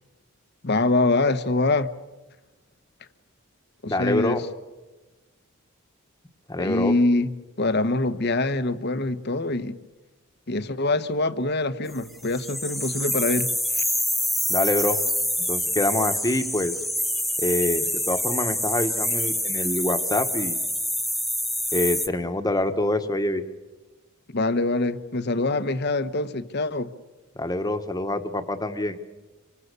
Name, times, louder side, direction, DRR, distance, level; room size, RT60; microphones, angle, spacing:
voice 1, 0.6-1.9 3.8-4.4 6.6-7.3 7.6-9.7 10.5-13.8 24.3-26.9, left 2 dB, 50° left, 12 dB, 1.0 m, -24 dB
voice 2, 3.9-4.4 6.5-6.9 14.5-15.0 15.5-16.7 17.4-20.6 21.7-23.4 27.3-29.0, left 1 dB, 15° left, 7 dB, 1.4 m, -25 dB
sound 1, 12.2-22.1, equal, ahead, 0.7 m, -26 dB
27.5 x 25.0 x 6.9 m, 1.2 s
head